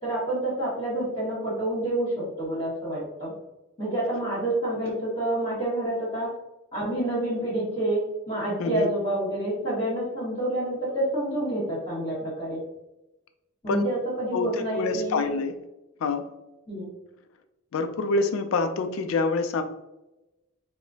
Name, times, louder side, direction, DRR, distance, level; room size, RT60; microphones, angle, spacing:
voice 1, 0.0-3.3 3.8-6.3 6.7-12.6 13.6-15.2 16.7-16.9, right 1 dB, 30° left, -10 dB, 1.4 m, -28 dB
voice 2, 14.3-15.6 16.0-16.3 17.7-19.6, left 3 dB, 75° left, 8 dB, 0.3 m, -26 dB
4.7 x 2.1 x 2.7 m, 0.97 s
head